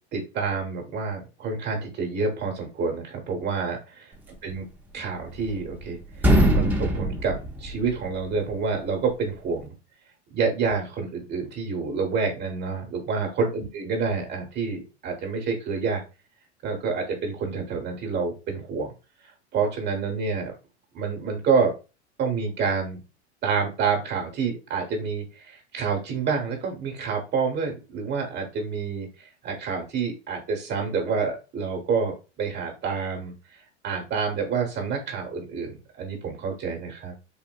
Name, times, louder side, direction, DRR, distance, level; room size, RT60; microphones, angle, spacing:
voice 1, 0.1-4.1 4.4-4.6 4.9-9.7 10.3-16.0 16.6-18.9 19.5-20.5 20.9-21.7 22.2-23.0 23.4-29.1 29.4-33.3 33.8-37.1, right 5 dB, 30° right, 2 dB, 1.0 m, -28 dB
industrial skipbin close reverb, 5.0-5.8 6.1-8.3, right 1 dB, 5° right, 0.5 m, -22 dB
3.7 x 2.4 x 2.2 m, 0.30 s
hypercardioid pair, 105°, 33 cm